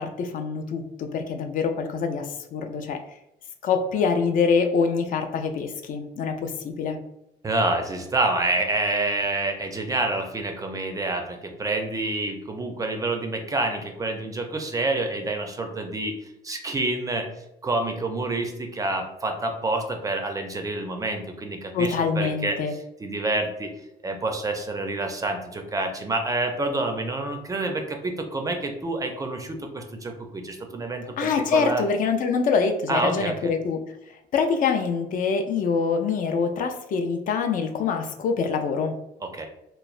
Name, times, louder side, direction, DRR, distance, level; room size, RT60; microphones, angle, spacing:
voice 1, 0.0-3.0 3.6-7.0 21.7-22.7 31.2-33.8 34.3-38.9, left 5 dB, 55° left, 5 dB, 0.4 m, -25 dB
voice 2, 7.4-16.2 16.4-17.3 17.6-22.6 23.0-23.7 24.0-31.8 32.9-33.4 39.2-39.5, right 2 dB, 20° right, 4 dB, 0.4 m, -28 dB
3.0 x 2.0 x 2.4 m, 0.85 s
cardioid pair, 110°, 17 cm